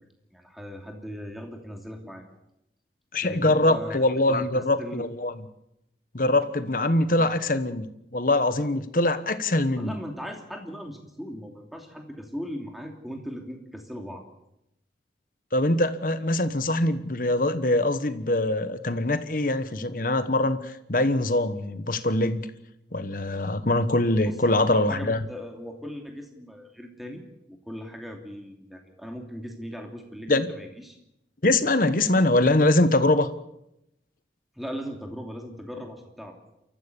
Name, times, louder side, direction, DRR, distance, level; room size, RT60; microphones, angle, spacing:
voice 1, 0.3-2.2 3.2-5.1 7.2-7.3 9.8-14.3 24.2-27.2 27.5-31.0 34.6-36.4, equal, ahead, 2 dB, 2.8 m, -38 dB
voice 2, 3.1-5.3 6.1-7.9 8.1-10.0 15.5-22.5 22.9-25.2 30.3-30.5 31.4-33.3, left 2 dB, 50° left, 12 dB, 1.2 m, -23 dB
29.5 x 14.5 x 7.0 m, 0.84 s
head